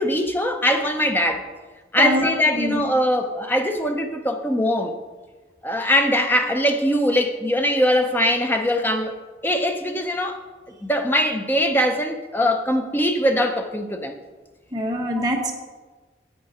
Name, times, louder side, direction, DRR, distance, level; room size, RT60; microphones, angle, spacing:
voice 1, 0.0-1.4 1.9-4.9 5.6-9.2 9.4-10.4 10.8-14.1, equal, 10° left, 5 dB, 0.7 m, -21 dB
voice 2, 14.7-15.5, equal, 20° right, 0 dB, 1.2 m, -24 dB
9.1 x 8.6 x 4.2 m, 1.3 s
head